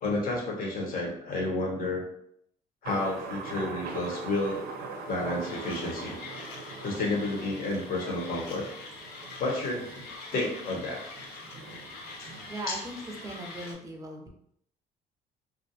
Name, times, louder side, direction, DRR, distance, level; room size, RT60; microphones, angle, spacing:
voice 1, 0.0-2.0 2.8-4.6 5.1-6.1 6.8-8.6 9.4-10.1 10.3-11.0 12.2-12.3 12.7-12.8, left 2 dB, 55° left, -1 dB, 0.9 m, -31 dB
Thunder, 2.8-13.7, right 4 dB, 75° right, 0.5 m, -42 dB
Mechanisms, 5.4-13.7, left 4 dB, 75° left, 0.5 m, -45 dB
voice 2, 12.5-14.3, right 1 dB, 20° right, 1 dB, 0.6 m, -38 dB
2.4 x 2.2 x 2.7 m, 0.70 s
cardioid pair, 110°, 17 cm